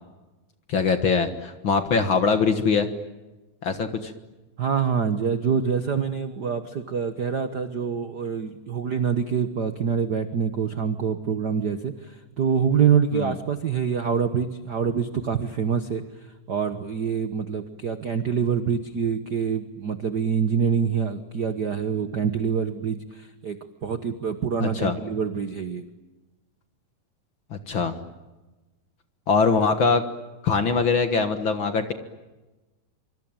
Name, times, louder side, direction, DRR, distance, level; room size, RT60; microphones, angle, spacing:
voice 1, 0.7-2.9 3.6-4.1 13.1-13.4 24.6-25.0 27.5-28.0 29.3-30.0 30.4-31.9, left 5 dB, 50° left, 8 dB, 1.7 m, -22 dB
voice 2, 4.6-16.0 16.5-25.8, right 6 dB, 85° right, 9 dB, 0.9 m, -25 dB
25.5 x 25.5 x 9.0 m, 1.1 s
omnidirectional pair, 3.8 m